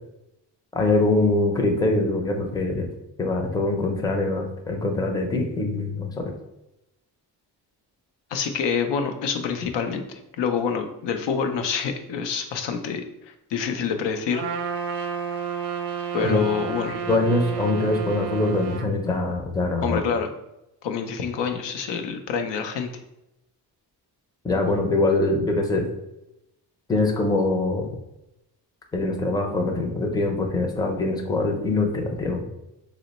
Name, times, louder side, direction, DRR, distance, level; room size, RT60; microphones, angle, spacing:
voice 1, 0.7-2.9 3.2-6.3 16.2-16.4 16.9-20.0 24.4-25.9 26.9-27.9 28.9-32.4, left 2 dB, 10° left, 2 dB, 0.4 m, -23 dB
voice 2, 8.3-14.5 16.1-16.9 19.8-20.3 20.8-22.9, left 6 dB, 90° left, 6 dB, 0.5 m, -27 dB
Trumpet, 14.3-18.9, right 6 dB, 70° right, 0.5 m, -31 dB
2.9 x 2.1 x 4.0 m, 0.90 s
cardioid pair, 120°, 42 cm